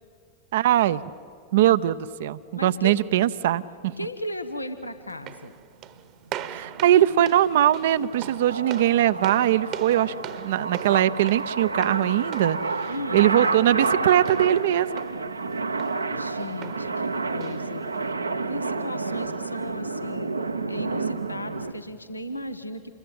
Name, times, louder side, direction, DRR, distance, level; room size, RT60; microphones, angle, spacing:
voice 1, 0.5-1.0 1.5-3.9 6.5-14.9, right 12 dB, 55° right, 14 dB, 0.7 m, -21 dB
voice 2, 2.5-3.0 4.0-5.6 12.9-13.3 16.1-17.9 18.5-20.3 20.7-22.9, left 1 dB, 85° left, 10 dB, 1.1 m, -36 dB
sound 1, 5.1-18.1, right 11 dB, 35° right, 1.1 m, -42 dB
sound 2, 6.4-21.7, right 3 dB, 80° right, 1.0 m, -30 dB
27.5 x 21.5 x 9.0 m, 2.2 s
figure-of-eight pair, 90°, 0 cm